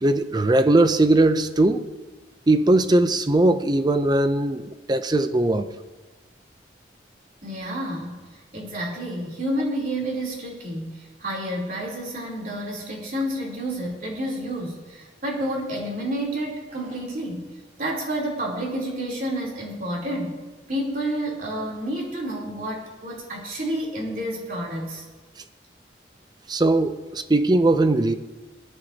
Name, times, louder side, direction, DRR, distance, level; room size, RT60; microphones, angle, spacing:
voice 1, 0.0-1.9 2.5-5.7 26.5-28.1, right 2 dB, 25° right, 10 dB, 0.5 m, -19 dB
voice 2, 7.4-17.5 17.8-20.4 20.7-25.0, right 1 dB, 50° right, -4 dB, 3.3 m, -30 dB
19.5 x 11.0 x 2.8 m, 1.3 s
head